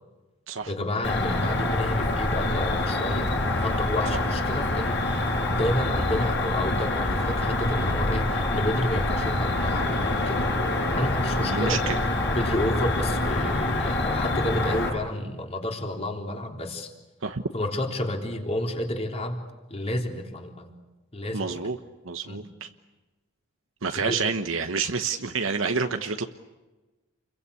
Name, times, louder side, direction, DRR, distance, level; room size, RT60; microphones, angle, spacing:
voice 1, 0.7-10.5 11.0-11.9 12.3-16.9 17.5-19.4 19.7-20.7 21.1-21.6 22.3-22.4 23.9-24.3, left 1 dB, 30° left, 2 dB, 3.6 m, -30 dB
Cricket, 1.0-14.9, left 2 dB, 60° left, 6.3 m, -26 dB
voice 2, 11.4-12.0 17.2-17.4 21.3-21.8 22.0-22.7 23.8-26.3, right 5 dB, 70° right, 6 dB, 1.1 m, -28 dB
29.0 x 22.5 x 8.4 m, 1.2 s
head